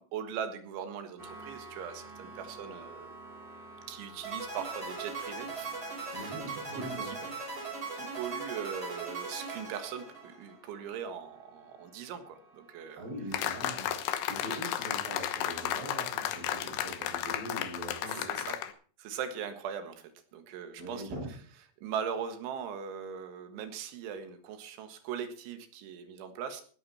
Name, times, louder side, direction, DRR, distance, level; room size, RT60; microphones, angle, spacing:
voice 1, 0.0-3.1 3.9-5.8 6.1-6.3 6.7-7.2 7.9-13.0 14.5-14.6 18.1-18.6 19.0-21.1 21.8-26.6, right 8 dB, 75° right, 8 dB, 4.0 m, -40 dB
sound 1, 1.2-13.7, right 2 dB, 15° right, 2.5 m, -52 dB
sound 2, 4.2-10.5, right 4 dB, 30° right, 7.4 m, -39 dB
voice 2, 6.1-7.3 12.9-18.5 20.8-21.3, right 1 dB, 60° right, -6 dB, 8.0 m, -42 dB
sound 3, 13.3-18.7, left 11 dB, 70° left, 3.0 m, -33 dB
17.5 x 12.5 x 4.3 m, 0.43 s
omnidirectional pair, 5.5 m